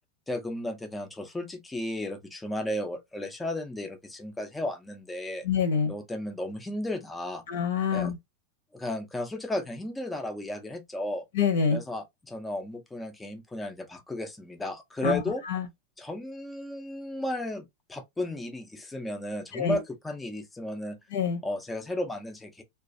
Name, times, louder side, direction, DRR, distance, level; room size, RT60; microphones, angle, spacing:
voice 1, 0.3-5.4 5.9-7.4 7.9-8.1 8.7-11.2 11.7-15.4 16.0-21.0 21.4-22.6, left 1 dB, 5° left, 0.4 m, -34 dB
voice 2, 5.4-5.9 7.5-8.2 11.3-11.8 15.0-15.2 15.5-15.7 19.5-19.8 21.1-21.4, left 6 dB, 70° left, 0.7 m, -26 dB
2.3 x 2.3 x 2.5 m
supercardioid pair, 175°, 0 cm